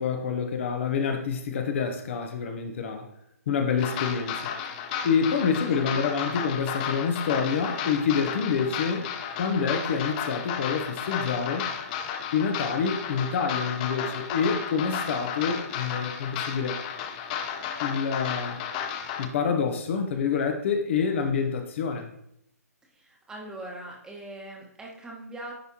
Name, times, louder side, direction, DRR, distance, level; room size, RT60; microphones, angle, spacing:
voice 1, 0.0-3.1 3.5-4.5 5.0-9.1 9.4-11.7 12.3-16.8 17.8-18.6 19.2-22.1, left 6 dB, 50° left, 5 dB, 0.9 m, -27 dB
sound 1, 3.8-19.3, left 7 dB, 30° left, 0.6 m, -33 dB
voice 2, 22.9-25.6, right 1 dB, 10° right, -1 dB, 1.2 m, -41 dB
10.0 x 3.5 x 2.8 m, 0.75 s
hypercardioid pair, 140°, 9 cm